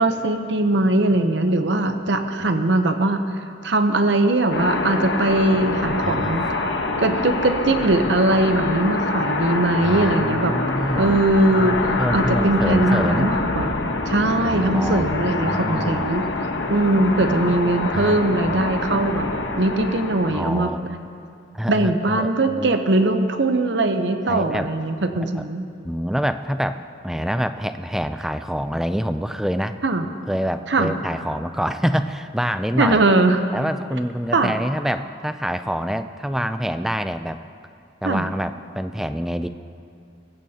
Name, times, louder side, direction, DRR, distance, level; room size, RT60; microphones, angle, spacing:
voice 1, 0.0-3.2 3.6-6.6 7.0-10.5 10.9-11.8 12.1-13.7 14.1-16.2 16.7-19.3 19.5-20.7 21.7-25.7 29.8-30.0 30.7-30.9 32.8-33.4 34.3-34.5 38.0-38.3, right 2 dB, 70° right, 7 dB, 0.8 m, -20 dB
sound 1, 4.5-20.5, left 2 dB, 70° left, 1.1 m, -25 dB
voice 2, 6.0-6.4 9.8-11.2 11.6-13.3 14.5-16.1 17.9-18.2 18.5-18.6 20.3-20.9 21.5-22.7 24.3-24.7 25.3-25.4 25.8-26.8 27.0-29.8 30.3-33.0 33.5-37.4 38.0-39.5, equal, ahead, 10 dB, 0.3 m, -26 dB
22.0 x 15.5 x 2.8 m, 2.5 s
head